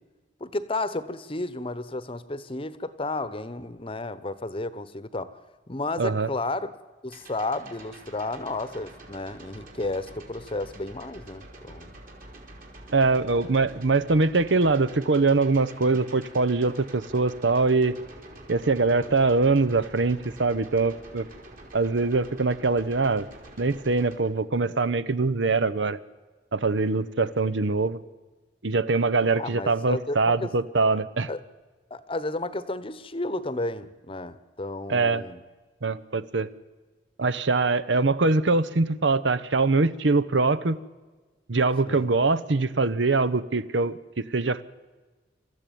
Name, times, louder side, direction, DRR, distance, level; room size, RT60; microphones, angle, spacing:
voice 1, 0.4-5.3 5.7-6.7 7.0-12.0 29.4-30.5 31.3-31.4 31.9-35.4 41.9-42.1, left 2 dB, 30° left, 15 dB, 1.0 m, -32 dB
voice 2, 6.0-6.3 12.9-18.0 18.5-21.3 21.7-23.3 23.6-26.0 26.5-28.0 28.6-31.3 34.9-35.2 35.8-36.5 37.2-40.8 41.5-44.6, right 3 dB, 75° right, 16 dB, 0.9 m, -23 dB
sound 1, 7.1-24.2, right 2 dB, 50° right, 4.0 m, -47 dB
26.0 x 14.0 x 9.3 m, 1.3 s
head